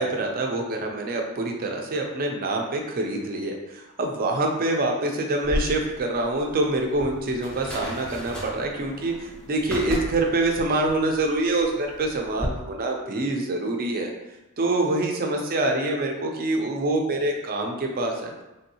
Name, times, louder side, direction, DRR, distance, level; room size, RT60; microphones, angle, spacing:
voice 1, 0.0-14.1 14.6-18.3, right 2 dB, 45° right, 2 dB, 0.5 m, -26 dB
sound 1, 5.4-12.5, equal, 5° left, 0.6 m, -35 dB
3.4 x 2.6 x 2.7 m, 0.98 s
head